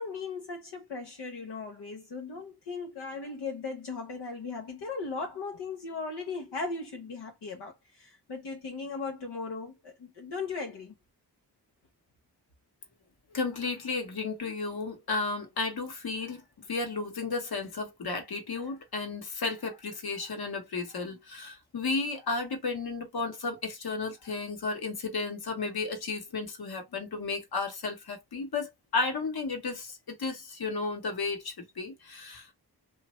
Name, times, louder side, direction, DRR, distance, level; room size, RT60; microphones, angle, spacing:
voice 1, 0.0-10.9, left 4 dB, 85° left, 0.8 m, -37 dB
voice 2, 13.3-16.4 16.7-32.5, left 4 dB, 65° left, 1.1 m, -33 dB
3.0 x 2.4 x 3.0 m
cardioid pair, 50°, 40 cm